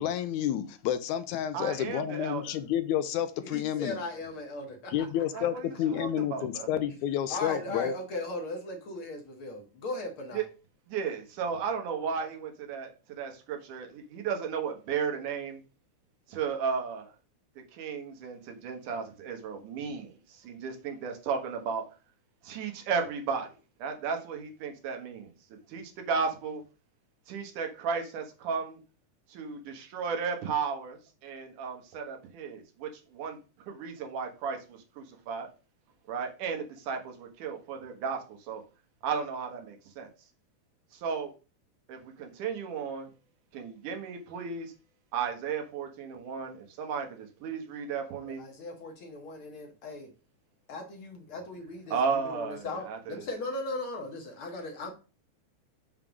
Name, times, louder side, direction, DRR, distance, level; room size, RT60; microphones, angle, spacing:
voice 1, 0.0-4.0 4.9-7.9, left 10 dB, 85° left, 2.0 m, -30 dB
voice 2, 1.5-2.6 5.3-6.7 10.3-10.4 10.9-12.9 13.2-15.6 16.3-17.1 17.7-21.8 22.4-23.5 23.8-25.3 25.7-26.6 27.3-28.8 29.3-33.4 33.7-35.5 36.1-38.6 39.0-40.1 40.9-41.3 41.9-43.1 43.5-44.7 45.1-48.4 51.9-53.2, right 6 dB, 85° right, 2.8 m, -34 dB
voice 3, 3.4-5.1 7.3-10.4 48.2-50.1 50.7-52.0 52.2-54.9, left 2 dB, 55° left, 1.7 m, -37 dB
6.6 x 3.7 x 6.0 m
omnidirectional pair, 3.5 m